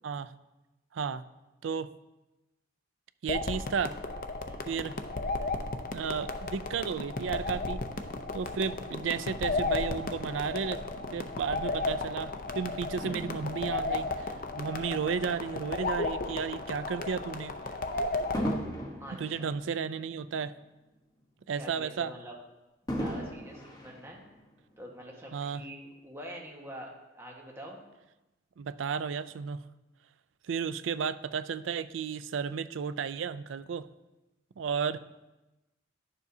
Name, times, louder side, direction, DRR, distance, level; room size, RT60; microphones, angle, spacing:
voice 1, 0.9-1.2 1.6-1.9 3.2-3.9 4.7-5.0 5.9-7.8 8.3-10.8 11.1-17.6 19.1-20.5 21.5-22.1 25.3-25.6 28.6-29.6 30.5-33.9 34.6-35.0, right 6 dB, 80° right, 15 dB, 0.4 m, -33 dB
sound 1, 3.3-18.6, left 3 dB, 45° left, 0.6 m, -34 dB
Fireworks, 13.0-15.6 16.2-16.5 18.3-20.8 21.2-21.3 22.9-24.8 25.5-25.6, equal, 20° left, 1.1 m, -38 dB
voice 2, 19.0-19.5 21.5-22.3 22.9-24.2 24.8-27.8 34.8-35.0, equal, 15° right, -1 dB, 1.4 m, -45 dB
11.0 x 7.0 x 2.7 m, 1.0 s
head